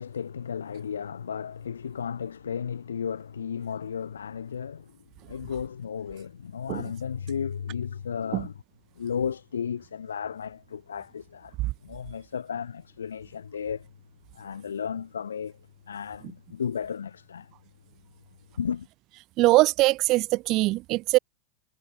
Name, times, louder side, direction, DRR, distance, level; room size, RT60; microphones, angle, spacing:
voice 1, 0.0-5.0 5.3-8.5 9.0-11.5 11.8-13.9 14.3-15.6 15.9-17.5 18.6-18.9, left 7 dB, 90° left, 1.2 m, -34 dB
voice 2, 19.4-21.2, right 19 dB, 45° right, 0.4 m, -22 dB
hypercardioid pair, 105°, 0 cm